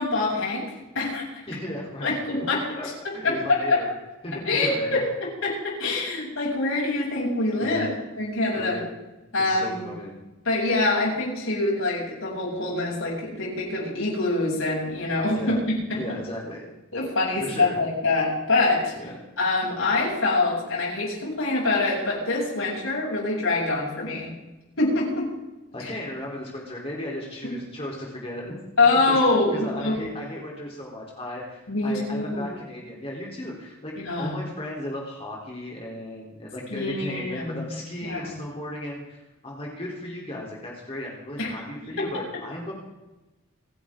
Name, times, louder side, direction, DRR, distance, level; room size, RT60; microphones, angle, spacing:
voice 1, 0.0-1.4 2.0-2.7 3.0-3.8 4.5-7.9 8.2-8.8 9.3-9.9 10.4-16.2 16.9-18.9 19.4-24.3 24.8-25.3 25.8-25.9 27.4-27.5 28.8-30.0 31.7-32.5 34.0-34.3 36.7-37.6 38.0-38.3 41.4-41.5 42.0-42.1, left 2 dB, 80° left, -3 dB, 7.6 m, -25 dB
voice 2, 1.5-2.1 2.7-3.9 4.2-4.9 7.6-7.9 8.5-8.8 9.4-10.1 15.3-15.6 16.0-16.8 17.4-17.8 18.9-19.2 25.7-28.6 29.1-33.9 34.2-42.7, left 1 dB, 30° left, -3 dB, 3.5 m, -35 dB
28.5 x 11.5 x 3.8 m, 1.0 s
head